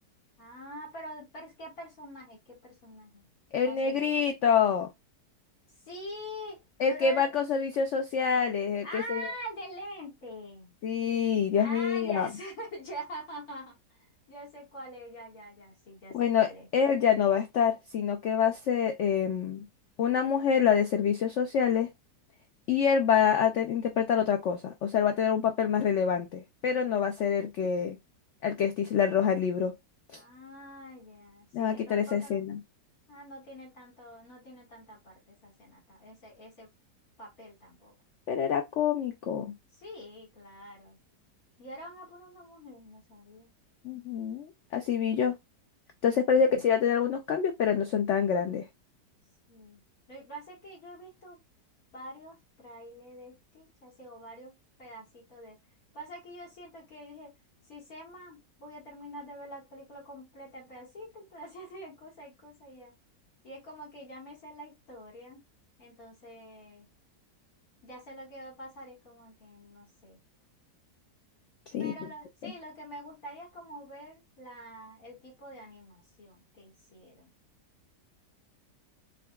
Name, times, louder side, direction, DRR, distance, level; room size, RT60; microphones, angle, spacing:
voice 1, 0.4-3.3 3.6-4.2 5.8-6.6 6.9-7.2 8.8-10.7 11.6-16.7 27.1-27.2 30.1-32.4 33.1-36.7 37.2-37.9 39.7-41.0 41.6-43.5 49.5-49.8 50.1-51.4 51.9-55.6 55.9-57.3 57.7-62.9 63.4-65.5 65.8-66.9 67.8-70.2 71.8-77.3, equal, 55° left, 2.5 m, -45 dB
voice 2, 3.5-4.9 6.8-9.2 10.8-12.3 16.1-19.6 20.0-21.9 22.7-28.0 28.4-29.7 30.1-30.2 31.5-32.6 38.3-39.5 43.8-45.4 46.0-48.7 71.7-71.9 72.4-72.5, left 7 dB, 90° left, 0.6 m, -26 dB
3.8 x 3.4 x 2.3 m
omnidirectional pair, 1.9 m